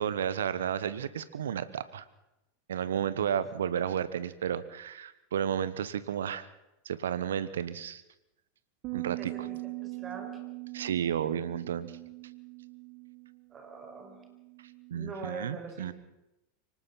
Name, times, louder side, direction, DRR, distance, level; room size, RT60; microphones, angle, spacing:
voice 1, 0.0-2.0 2.7-6.5 6.8-8.0 8.9-9.5 10.7-11.9 14.9-15.9, right 9 dB, 75° right, 16 dB, 1.1 m, -32 dB
sound 1, 8.8-15.1, right 28 dB, 50° right, 0.9 m, -42 dB
voice 2, 9.2-10.4 13.5-14.2 14.9-15.9, right 4 dB, 30° right, 5 dB, 5.1 m, -43 dB
24.5 x 19.0 x 5.8 m, 0.93 s
figure-of-eight pair, 85°, 0 cm